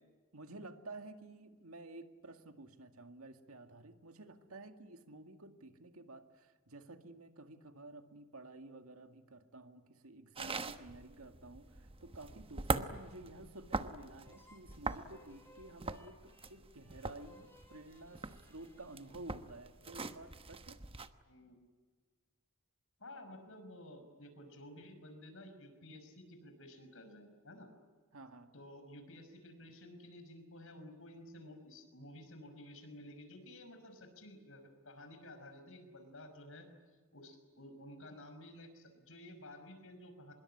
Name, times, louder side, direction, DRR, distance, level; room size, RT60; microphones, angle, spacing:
voice 1, 0.3-20.8 28.1-28.5, right 2 dB, 75° right, 7 dB, 2.1 m, -52 dB
sound 1, 10.4-21.1, right 3 dB, 25° right, 1.1 m, -42 dB
sound 2, 14.2-19.7, left 2 dB, 10° left, 4.1 m, -64 dB
voice 2, 21.3-21.6 23.0-27.7 28.5-36.7 37.1-40.3, left 1 dB, 65° left, 7 dB, 5.6 m, -53 dB
25.5 x 22.0 x 9.9 m, 1.5 s
head